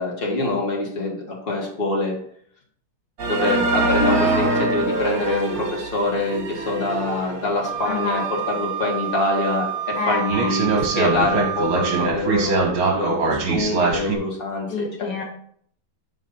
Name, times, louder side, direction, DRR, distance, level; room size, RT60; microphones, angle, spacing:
voice 1, 0.0-2.2 3.2-15.2, left 2 dB, 35° left, -2 dB, 1.6 m, -25 dB
sound 1, 3.2-8.6 9.1-9.2 9.7-9.8 10.3-14.2, right 3 dB, 60° right, 1.4 m, -23 dB
Wind instrument woodwind instrument, 7.6-12.1, right 11 dB, 75° right, 1.2 m, -29 dB
voice 2, 7.9-8.2 9.9-10.5 14.7-15.2, left 4 dB, 75° left, 2 dB, 1.4 m, -27 dB
5.0 x 3.8 x 5.5 m, 0.63 s
omnidirectional pair, 1.9 m